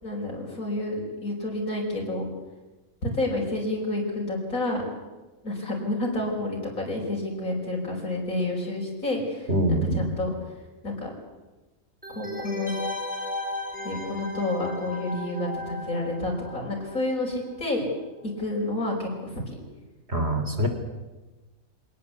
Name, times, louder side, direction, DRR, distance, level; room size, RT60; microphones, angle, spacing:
voice 1, 0.0-2.3 3.0-4.8 5.4-10.3 10.8-11.1 12.1-12.7 13.8-17.9 18.4-19.6, left 2 dB, 80° left, -2 dB, 5.7 m, -29 dB
voice 2, 9.5-10.0 20.1-20.7, right 1 dB, 50° right, 6 dB, 3.9 m, -24 dB
sound 1, 12.0-17.5 17.8-17.9, left 1 dB, 5° right, 3.3 m, -35 dB
26.0 x 18.5 x 8.4 m, 1.2 s
omnidirectional pair, 1.5 m